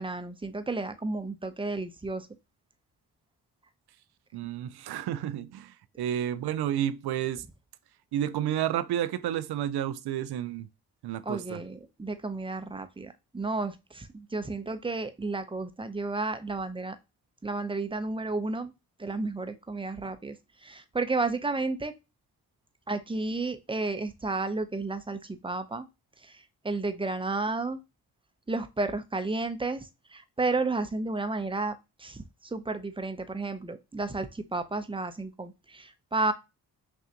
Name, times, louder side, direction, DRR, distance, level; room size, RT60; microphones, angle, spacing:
voice 1, 0.0-2.3 11.2-17.0 17.4-18.7 19.0-20.4 20.6-21.9 22.9-25.9 26.2-27.8 28.5-36.3, right 3 dB, 15° right, 0.7 m, -32 dB
voice 2, 4.3-7.4 8.1-10.7 11.0-11.6, right 11 dB, 75° right, 0.5 m, -31 dB
5.9 x 2.5 x 2.8 m
supercardioid pair, 45°, 39 cm